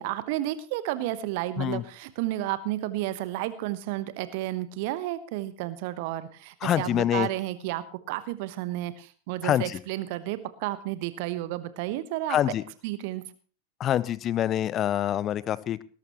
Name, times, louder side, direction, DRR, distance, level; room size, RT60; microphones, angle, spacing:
voice 1, 0.0-12.5 12.8-13.2, right 15 dB, 50° right, 14 dB, 1.1 m, -32 dB
voice 2, 6.6-7.3 9.4-9.8 12.3-12.6 13.8-15.8, left 11 dB, 30° left, 20 dB, 0.7 m, -25 dB
19.5 x 12.0 x 3.1 m, 0.39 s
figure-of-eight pair, 90°, 0 cm